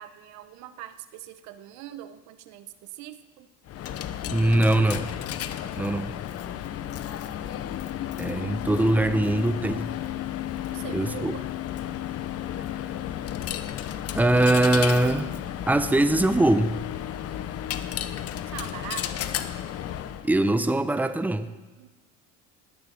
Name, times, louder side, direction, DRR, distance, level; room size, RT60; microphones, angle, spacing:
voice 1, 0.0-3.5 10.0-10.2 10.7-11.5 18.5-19.3 21.8-21.9, right 12 dB, 70° right, 11 dB, 1.1 m, -42 dB
Coin (dropping), 3.7-20.3, left 11 dB, 55° left, 1.0 m, -33 dB
voice 2, 4.3-5.1 5.8-6.2 8.2-9.9 10.9-11.4 14.1-15.3 15.7-16.8 20.2-21.5, right 1 dB, 5° right, 11 dB, 0.8 m, -22 dB
19.0 x 6.9 x 7.8 m, 1.3 s
supercardioid pair, 105°, 29 cm